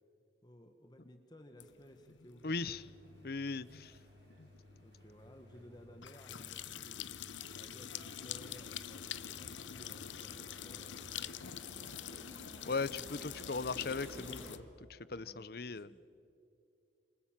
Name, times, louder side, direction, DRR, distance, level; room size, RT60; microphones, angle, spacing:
voice 1, 0.4-2.8 4.5-7.1 7.5-12.0 15.1-16.0, equal, 20° left, 6 dB, 1.4 m, -58 dB
sound 1, 1.6-14.6, left 10 dB, 85° left, 0.8 m, -46 dB
voice 2, 2.4-2.8 3.2-3.9 12.7-14.6 14.9-15.9, left 4 dB, 55° left, 17 dB, 0.7 m, -38 dB
sound 2, 2.4-11.6, left 1 dB, 65° right, 4.2 m, -60 dB
sound 3, 8.2-14.5, equal, 15° right, 4.9 m, -55 dB
28.5 x 28.0 x 7.4 m, 2.7 s
head